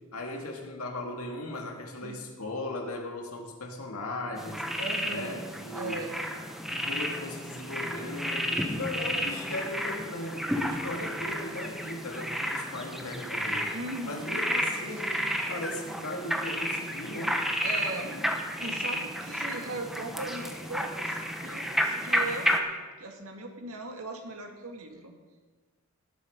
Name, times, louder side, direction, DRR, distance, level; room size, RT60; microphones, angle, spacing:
voice 1, 0.1-4.7 5.1-6.0 6.6-13.7 14.0-17.4 18.0-18.3, left 2 dB, 75° left, 2 dB, 2.2 m, -37 dB
sound 1, 4.4-22.6, equal, ahead, 1.0 m, -32 dB
voice 2, 4.8-5.4 5.7-6.2 13.7-14.4 17.6-18.1 18.6-22.6 23.0-25.1, right 2 dB, 70° right, 3 dB, 2.0 m, -38 dB
18.5 x 8.1 x 5.4 m, 1.4 s
head